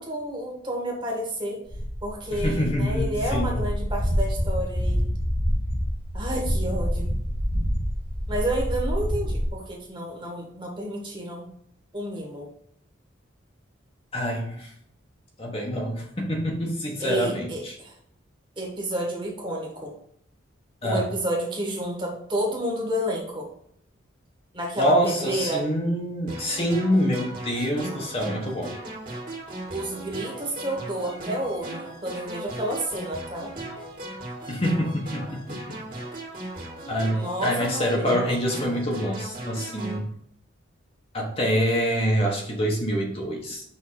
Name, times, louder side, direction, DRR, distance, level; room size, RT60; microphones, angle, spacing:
voice 1, 0.0-1.6 2.0-5.1 6.1-7.1 8.3-11.5 11.9-12.5 17.0-17.9 18.6-19.9 20.8-23.5 24.5-25.6 29.7-33.5 37.1-38.2, right 1 dB, 25° right, -1 dB, 1.6 m, -30 dB
sound 1, 1.7-9.5, equal, 55° left, 2.0 m, -27 dB
voice 2, 2.3-3.6 14.1-14.7 15.4-17.7 20.8-21.1 24.8-28.7 34.5-35.8 36.9-40.1 41.1-43.6, equal, 30° left, -2 dB, 1.1 m, -26 dB
sound 2, 26.3-40.0, right 1 dB, 45° right, 2.0 m, -37 dB
5.7 x 3.6 x 4.8 m, 0.69 s
head